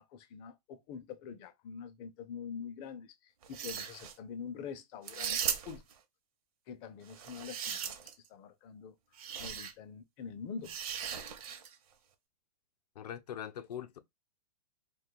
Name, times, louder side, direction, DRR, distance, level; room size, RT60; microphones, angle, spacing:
voice 1, 0.0-5.8 6.7-7.9 8.3-8.9 9.4-10.8, left 6 dB, 25° left, 0.4 m, -45 dB
sound 1, 3.4-4.1 5.0-5.9 7.1-8.3 9.2-9.7 10.6-11.7, right 8 dB, 60° right, 0.7 m, -38 dB
voice 2, 13.0-14.0, left 9 dB, 80° left, 0.6 m, -42 dB
2.4 x 2.3 x 3.7 m
hypercardioid pair, 145°, 20 cm